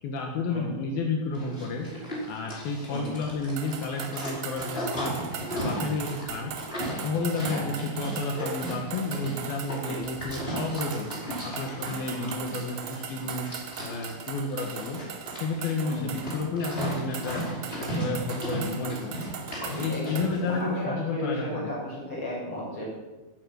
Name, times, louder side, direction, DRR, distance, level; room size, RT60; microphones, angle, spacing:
voice 1, 0.0-1.9 2.3-5.2 5.5-6.5 7.0-11.1 11.4-13.5 13.8-15.0 15.3-17.5 17.8-19.2 19.7-21.7, left 3 dB, 80° left, 1 dB, 3.5 m, -31 dB
Livestock farm animals working animals, 1.3-20.6, right 1 dB, 15° left, 4.9 m, -36 dB
voice 2, 2.9-3.2 7.5-7.8 9.9-10.0 12.0-12.4 15.8-16.1 19.9-22.8, equal, 35° left, -5 dB, 8.3 m, -34 dB
sound 1, 3.6-20.4, right 8 dB, 65° right, 2.7 m, -40 dB
15.5 x 14.0 x 6.4 m, 1.1 s
omnidirectional pair, 4.2 m